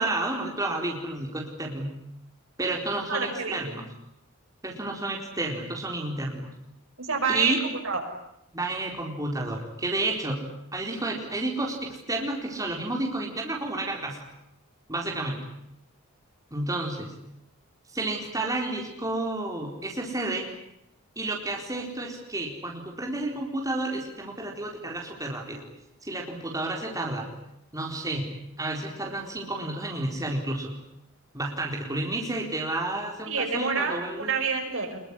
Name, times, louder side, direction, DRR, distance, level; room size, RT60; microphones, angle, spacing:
voice 1, 0.0-1.9 2.6-3.8 4.6-6.5 7.3-7.6 8.5-10.4 10.7-14.2 14.9-15.4 16.5-17.1 17.9-20.5 21.2-25.6 26.0-27.3 27.7-28.3 28.6-30.8 31.3-34.3, right 2 dB, 15° right, 0 dB, 4.3 m, -31 dB
voice 2, 3.1-3.8 7.0-8.0 33.3-35.0, right 5 dB, 65° right, 3 dB, 6.3 m, -28 dB
25.0 x 22.5 x 9.9 m, 0.82 s
head